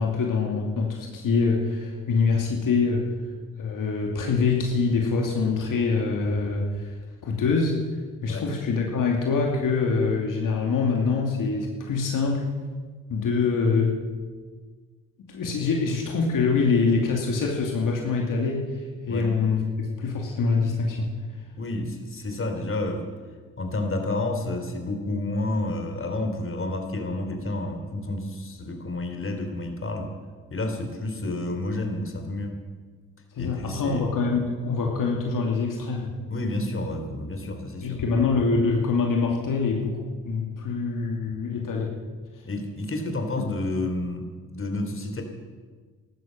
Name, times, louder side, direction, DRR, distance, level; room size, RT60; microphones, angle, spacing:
voice 1, 0.0-3.0 3.6-6.9 7.2-7.8 8.2-12.5 13.1-14.0 15.3-18.6 19.1-19.6 20.0-21.1 33.3-36.1 37.8-40.0 40.2-41.9 43.4-43.5, left 4 dB, 70° left, 0 dB, 2.7 m, -24 dB
voice 2, 21.6-23.0 23.6-30.1 30.5-32.5 33.4-34.0 36.3-38.0 42.4-45.2, left 2 dB, 40° left, 4 dB, 3.4 m, -30 dB
14.0 x 12.0 x 7.5 m, 1.5 s
supercardioid pair, 55°, 34 cm